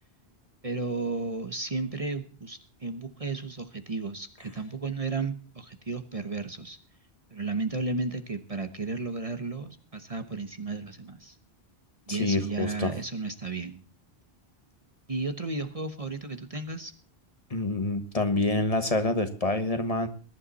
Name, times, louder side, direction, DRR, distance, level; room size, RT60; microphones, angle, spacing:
voice 1, 0.6-6.8 7.3-11.4 12.1-13.8 15.1-16.9, right 3 dB, 35° right, 8 dB, 1.1 m, -33 dB
voice 2, 12.1-12.9 17.5-20.1, left 2 dB, 35° left, 8 dB, 1.4 m, -27 dB
21.0 x 11.0 x 4.1 m, 0.39 s
omnidirectional pair, 1.0 m